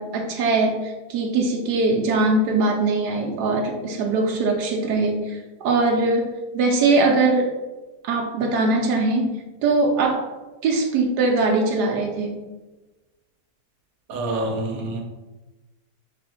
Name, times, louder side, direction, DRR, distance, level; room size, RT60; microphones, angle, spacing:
voice 1, 0.0-5.4 5.6-6.3 6.5-7.5 8.0-10.2 10.6-12.4, right 3 dB, 85° right, 1 dB, 1.3 m, -21 dB
voice 2, 14.1-15.0, right 2 dB, 65° right, 1 dB, 1.3 m, -27 dB
3.7 x 3.4 x 4.2 m, 1.1 s
omnidirectional pair, 1.7 m